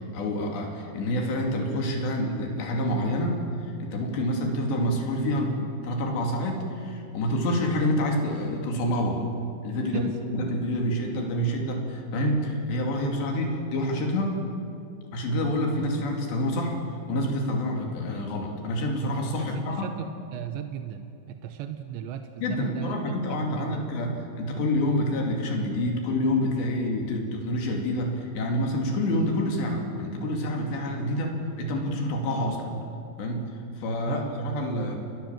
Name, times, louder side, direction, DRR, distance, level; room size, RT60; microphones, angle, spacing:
voice 1, 0.1-5.6 5.8-9.3 9.6-14.4 15.1-16.8 17.1-19.9 22.4-32.8 33.2-33.4 33.8-35.0, left 1 dB, 80° left, 1 dB, 4.8 m, -27 dB
voice 2, 9.8-10.2 19.4-23.0 23.3-23.9 34.1-34.2, right 9 dB, 90° right, 7 dB, 3.3 m, -36 dB
29.5 x 21.0 x 7.5 m, 2.5 s
omnidirectional pair, 5.0 m